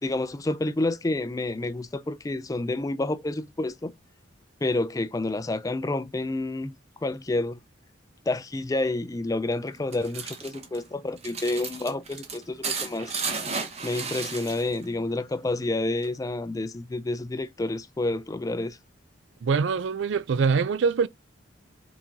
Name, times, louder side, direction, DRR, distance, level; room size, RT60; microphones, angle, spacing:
voice 1, 0.0-3.9 4.6-6.7 7.0-7.6 8.3-13.1 13.8-18.8, left 2 dB, 15° left, 0.3 m, -29 dB
sound 1, 9.7-14.9 15.2-16.2, right 5 dB, 35° right, 0.9 m, -34 dB
voice 2, 19.4-21.1, right 5 dB, 70° right, 0.4 m, -24 dB
4.5 x 3.7 x 2.7 m
head